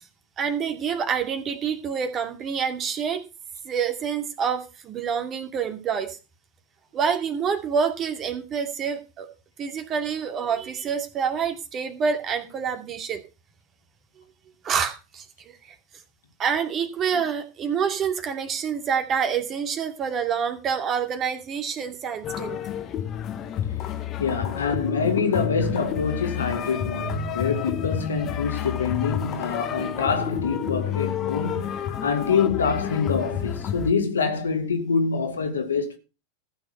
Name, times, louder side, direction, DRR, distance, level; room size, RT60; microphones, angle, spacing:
voice 1, 0.4-3.2 3.6-6.2 6.9-9.3 9.6-13.2 14.6-15.2 15.6-15.7 16.4-22.6, right 7 dB, 30° right, 2.3 m, -27 dB
sound 1, 22.2-33.9, left 9 dB, 35° left, 1.3 m, -30 dB
voice 2, 24.2-36.0, left 5 dB, 80° left, 2.1 m, -25 dB
14.5 x 6.9 x 5.5 m
figure-of-eight pair, 95°, 0 cm